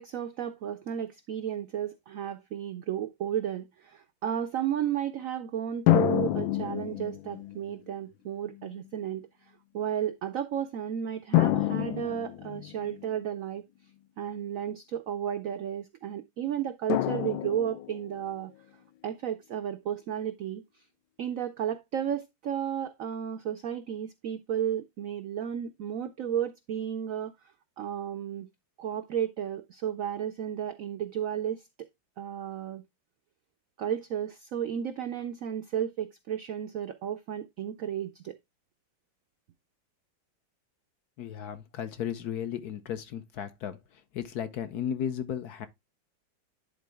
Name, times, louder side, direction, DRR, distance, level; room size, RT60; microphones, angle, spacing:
voice 1, 0.0-9.3 9.7-13.6 14.2-18.5 19.0-20.6 21.2-27.3 27.8-28.5 28.8-31.6 32.2-32.8 33.8-38.4, right 9 dB, 75° right, 0.7 m, -33 dB
sound 1, 5.9-7.6 8.5-8.6 11.3-13.1 16.9-18.2, left 14 dB, 90° left, 1.3 m, -27 dB
voice 2, 41.2-43.8 44.1-45.7, left 9 dB, 65° left, 1.1 m, -34 dB
10.5 x 4.0 x 3.4 m
omnidirectional pair, 2.0 m